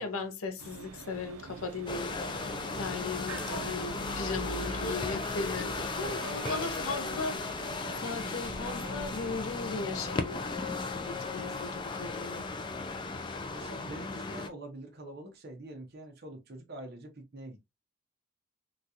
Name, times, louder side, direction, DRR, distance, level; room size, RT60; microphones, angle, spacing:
voice 1, 0.0-2.5 2.7-7.7 8.0-10.4 11.0-12.4, left 3 dB, 75° left, 0.7 m, -37 dB
sound 1, 0.6-9.6, right 4 dB, 80° right, 0.5 m, -45 dB
sound 2, 1.9-14.5, left 3 dB, 20° left, 0.3 m, -36 dB
voice 2, 2.7-3.0 5.9-6.2 13.5-17.6, right 1 dB, 45° right, 0.7 m, -45 dB
3.9 x 2.3 x 2.7 m
head